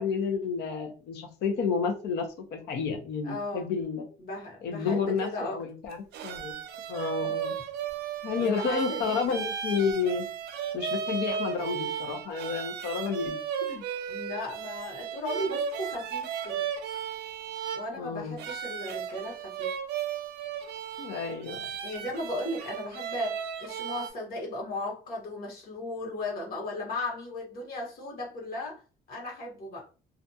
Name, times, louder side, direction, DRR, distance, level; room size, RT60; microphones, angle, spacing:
voice 1, 0.0-4.0 4.6-6.6 6.9-7.5 8.2-10.2 10.7-13.4 13.6-13.8 18.0-18.4 21.0-21.7, left 5 dB, 80° left, 4 dB, 0.7 m, -30 dB
voice 2, 3.2-3.7 4.2-5.6 8.4-9.4 14.1-16.6 17.7-19.7 21.8-28.8 29.1-29.9, left 2 dB, 60° left, -1 dB, 1.2 m, -36 dB
sound 1, 5.9-24.1, right 8 dB, 75° right, 0.5 m, -35 dB
2.5 x 2.3 x 2.6 m, 0.35 s
cardioid pair, 110°, 17 cm